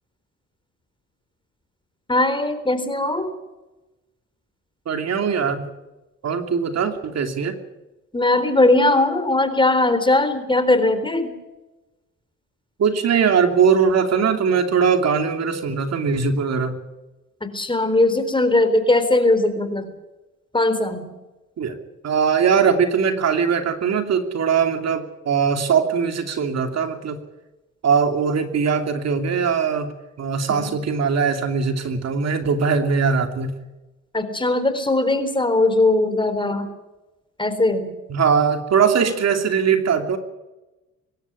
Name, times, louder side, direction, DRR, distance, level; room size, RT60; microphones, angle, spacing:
voice 1, 2.1-3.3 8.1-11.3 17.4-19.9 20.5-21.1 30.5-30.7 34.1-36.7 37.4-37.9, left 2 dB, 15° left, 10 dB, 4.1 m, -19 dB
voice 2, 4.9-5.7 6.2-7.6 12.8-16.8 21.6-21.8 22.0-27.2 27.8-29.9 30.2-33.5 38.1-40.2, right 6 dB, 60° right, 6 dB, 2.9 m, -20 dB
24.5 x 12.5 x 9.8 m, 1.0 s
cardioid pair, 90°, 30 cm